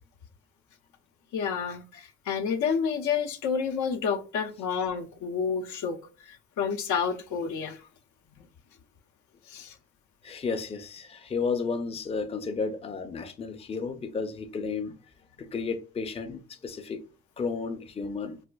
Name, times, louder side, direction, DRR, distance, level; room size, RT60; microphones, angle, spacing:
voice 1, 1.3-6.0 6.3-7.8 9.5-9.7, left 6 dB, 75° left, 0.6 m, -29 dB
voice 2, 10.2-14.9 15.4-17.0 17.4-18.4, left 4 dB, 20° left, 0.4 m, -32 dB
4.1 x 2.4 x 2.2 m
cardioid pair, 90°, 30 cm